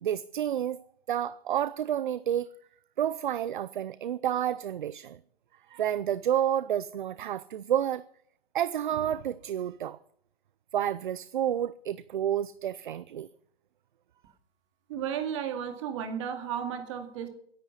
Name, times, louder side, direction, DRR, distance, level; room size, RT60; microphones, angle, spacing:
voice 1, 0.0-2.5 3.0-5.2 5.7-8.0 8.5-10.0 10.7-13.3, right 10 dB, 50° right, 0.5 m, -30 dB
voice 2, 14.9-17.3, right 8 dB, 30° right, 2.2 m, -33 dB
15.5 x 11.0 x 5.6 m
hypercardioid pair, 165°, 31 cm